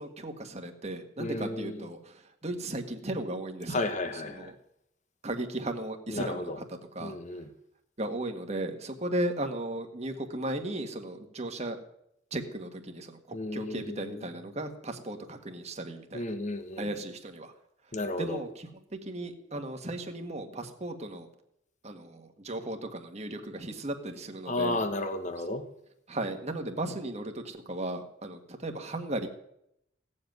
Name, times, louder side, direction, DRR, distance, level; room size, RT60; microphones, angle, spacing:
voice 1, 0.0-2.1 2.4-3.8 4.3-4.5 5.2-6.5 6.9-7.2 8.0-11.8 12.3-16.2 16.8-17.5 18.2-18.7 19.1-21.3 21.8-24.8 26.1-29.3, right 1 dB, 35° right, 1.7 m, -36 dB
voice 2, 1.2-1.9 3.7-4.5 6.1-6.6 7.0-7.5 13.3-14.3 16.1-16.9 17.9-18.4 24.5-25.7, left 2 dB, 40° left, 1.3 m, -33 dB
17.0 x 7.7 x 9.3 m
head